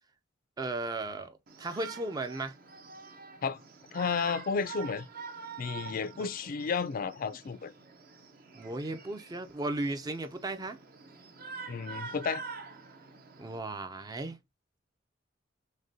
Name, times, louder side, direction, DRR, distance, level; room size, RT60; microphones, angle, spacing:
voice 1, 0.6-2.6 6.2-6.3 8.5-10.8 13.4-14.4, right 2 dB, 20° right, 0.4 m, -36 dB
Shout, 1.5-13.6, right 5 dB, 50° right, 0.7 m, -46 dB
voice 2, 3.9-5.1 5.6-7.7 11.7-12.4, left 5 dB, 50° left, 0.4 m, -32 dB
6.3 x 2.2 x 2.7 m
head